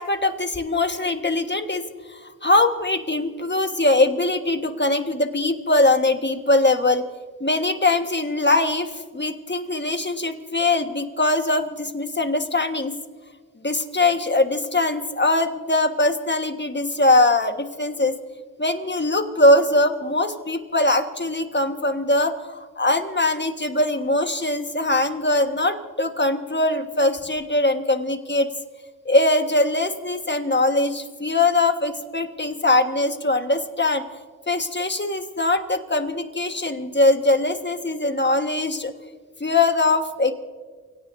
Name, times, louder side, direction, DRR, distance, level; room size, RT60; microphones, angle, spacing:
voice 1, 0.0-1.8 2.1-7.0 7.4-12.9 13.6-18.2 18.6-28.5 29.0-34.0 34.5-38.9 39.4-40.3, left 2 dB, 30° left, 6 dB, 1.5 m, -21 dB
29.5 x 17.5 x 2.7 m, 1.5 s
cardioid pair, 40°, 37 cm